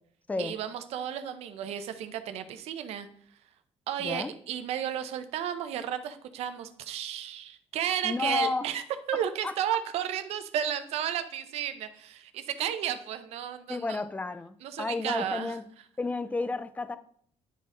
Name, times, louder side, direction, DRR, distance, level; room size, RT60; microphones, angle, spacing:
voice 1, 0.4-3.1 3.9-8.8 9.1-14.0 14.6-15.6, right 9 dB, 75° right, 0.7 m, -33 dB
voice 2, 4.0-4.3 8.0-8.7 9.4-9.5 13.7-15.6 16.0-17.0, left 3 dB, 15° left, 0.5 m, -31 dB
10.5 x 4.1 x 3.8 m
cardioid pair, 115°, 11 cm